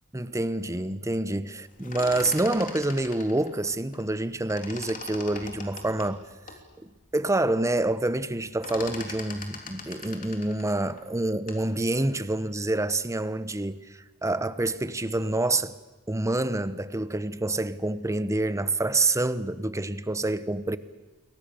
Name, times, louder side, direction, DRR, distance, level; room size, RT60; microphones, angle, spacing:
voice 1, 0.1-6.2 6.8-15.8 16.1-20.8, right 2 dB, 15° right, 0.9 m, -27 dB
sound 1, 1.7-4.2 4.5-6.6 7.1-7.2 7.5-7.9 8.2-11.7, left 4 dB, 35° left, 3.2 m, -41 dB
28.0 x 23.0 x 6.9 m
head